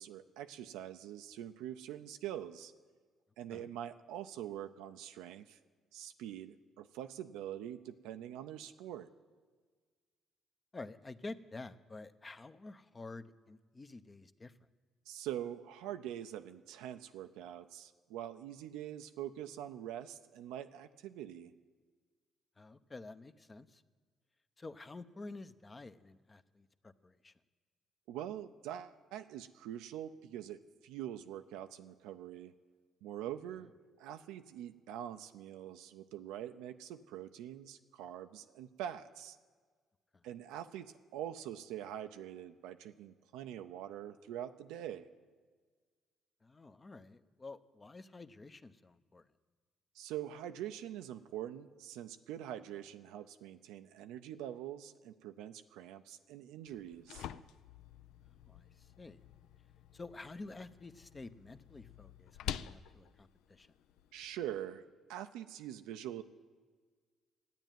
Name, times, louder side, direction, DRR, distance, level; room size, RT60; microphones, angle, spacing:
voice 1, 0.0-2.7 3.4-5.6 5.9-9.1 15.1-21.5 28.1-32.5 33.0-33.7 34.0-39.4 40.2-45.1 49.9-57.3 64.1-64.8 65.1-66.2, right 11 dB, 90° right, 8 dB, 0.5 m, -44 dB
voice 2, 10.7-14.5 22.6-23.8 24.6-27.3 46.4-49.2 58.4-58.7 59.0-59.2 59.9-63.7, left 3 dB, 25° left, 11 dB, 0.7 m, -50 dB
sound 1, 56.7-64.6, left 11 dB, 80° left, 0.4 m, -48 dB
12.0 x 9.1 x 9.1 m, 1.5 s
cardioid pair, 80°, 0 cm